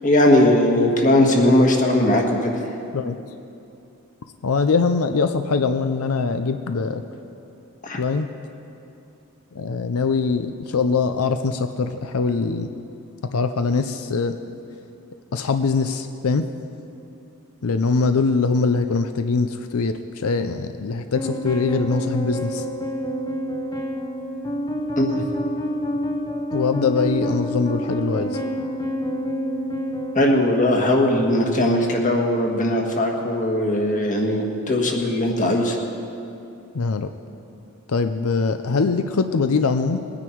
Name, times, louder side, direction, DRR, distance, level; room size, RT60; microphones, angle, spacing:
voice 1, 0.0-2.6 7.8-8.0 25.0-25.2 30.1-35.8, left 1 dB, 40° left, 1 dB, 1.7 m, -19 dB
voice 2, 4.4-7.0 8.0-8.3 9.5-12.7 13.3-14.4 15.3-16.4 17.6-22.6 26.5-28.4 36.7-37.1 37.9-40.0, left 4 dB, 90° left, 8 dB, 0.6 m, -22 dB
sound 1, 21.1-30.2, equal, 20° left, 0.7 m, -28 dB
21.0 x 9.7 x 4.6 m, 2.7 s
head